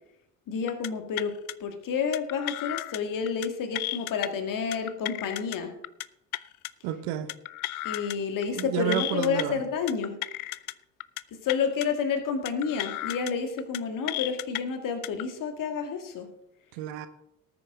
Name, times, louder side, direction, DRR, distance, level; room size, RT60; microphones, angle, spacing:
voice 1, 0.5-1.3 1.6-5.7 7.8-10.2 11.3-16.3, left 6 dB, 50° left, 6 dB, 2.2 m, -30 dB
sound 1, 0.7-0.9 1.2-1.5 2.1-3.0 3.3-3.5 3.8-4.3 4.7-5.6 5.8-6.1 6.3-6.7 7.3-8.2 8.4-8.6 8.9-9.4 9.9-10.7 11.0-11.2 11.5-11.9 12.5-13.3 13.6-13.8 14.1-14.6 15.0-15.2, left 17 dB, 75° left, 0.5 m, -34 dB
voice 2, 6.8-7.3 8.5-9.6 16.7-17.1, right 11 dB, 60° right, 11 dB, 1.2 m, -31 dB
18.5 x 9.2 x 3.8 m, 0.81 s
figure-of-eight pair, 55°, 43 cm